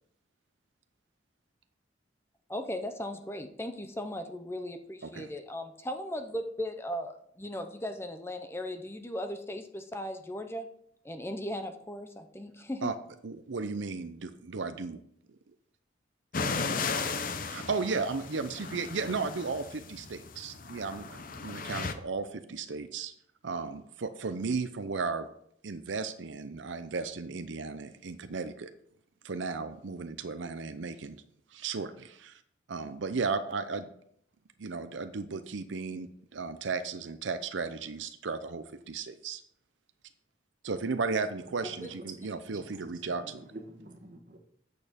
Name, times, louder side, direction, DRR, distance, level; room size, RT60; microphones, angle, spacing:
voice 1, 2.5-10.7 11.0-12.9 41.8-41.9, left 1 dB, 15° left, 7 dB, 0.6 m, -37 dB
voice 2, 13.2-15.0 17.5-23.1 23.4-25.3 25.6-28.7 29.2-31.2 31.5-32.4 32.7-33.9 34.6-39.4 40.6-43.4, right 4 dB, 75° right, 10 dB, 0.6 m, -35 dB
sound 1, 16.3-21.9, left 4 dB, 45° left, 0.7 m, -36 dB
voice 3, 42.1-44.4, right 2 dB, 45° right, 3 dB, 1.4 m, -48 dB
8.7 x 6.6 x 5.1 m, 0.68 s
head